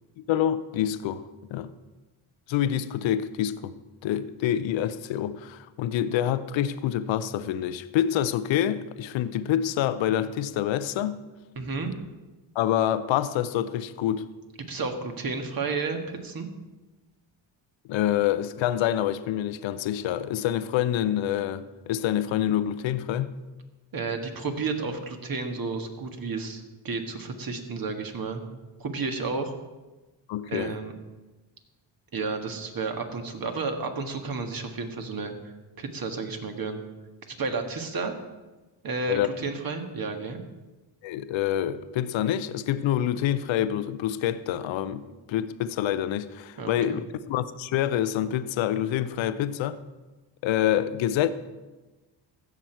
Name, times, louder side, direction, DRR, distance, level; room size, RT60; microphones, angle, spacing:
voice 1, 0.2-1.2 1.5-1.7 2.5-3.7 4.0-11.2 12.6-14.3 17.9-23.3 30.3-30.8 39.1-39.3 41.0-45.0 45.3-49.8 50.4-51.3, left 11 dB, 70° left, 0.7 m, -27 dB
voice 2, 11.6-11.9 14.6-16.5 23.9-28.4 28.8-29.5 30.5-30.9 32.1-36.8 37.3-38.1 38.8-40.4 46.6-47.0, right 4 dB, 45° right, 1.6 m, -32 dB
15.5 x 6.1 x 4.5 m
supercardioid pair, 65°, 48 cm